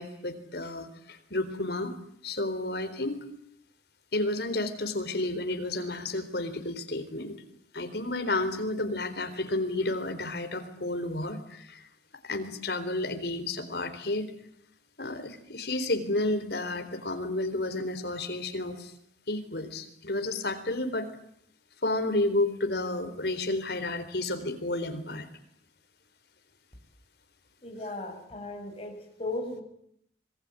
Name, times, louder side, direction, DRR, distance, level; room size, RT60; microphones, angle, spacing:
voice 1, 0.0-1.9 2.2-3.2 4.1-7.4 7.7-11.8 12.2-14.3 15.0-18.9 19.3-21.1 21.8-25.3, left 2 dB, 60° left, 8 dB, 4.0 m, -31 dB
voice 2, 27.6-29.6, left 2 dB, 30° left, 2 dB, 7.4 m, -36 dB
26.0 x 20.5 x 9.7 m, 0.70 s
head